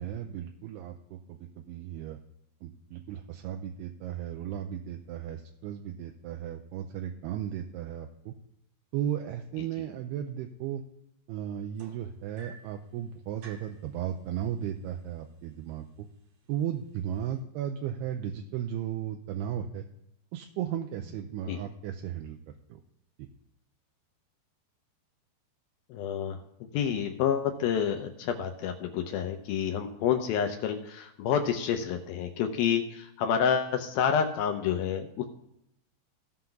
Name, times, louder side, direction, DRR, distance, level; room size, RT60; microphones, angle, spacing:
voice 1, 0.0-2.2 2.6-8.3 8.9-10.8 11.3-16.1 16.5-19.9 20.3-22.4 22.7-22.8 23.2-23.3, right 10 dB, 80° right, 4 dB, 2.6 m, -35 dB
sound 1, 11.8-12.8 13.4-13.8 14.8-14.9 15.4-15.7 16.4-16.5, right 4 dB, 60° right, 2.0 m, -51 dB
voice 2, 25.9-26.4 26.7-35.3, left 8 dB, 75° left, 6 dB, 2.3 m, -28 dB
17.0 x 5.8 x 3.9 m, 0.77 s
omnidirectional pair, 4.8 m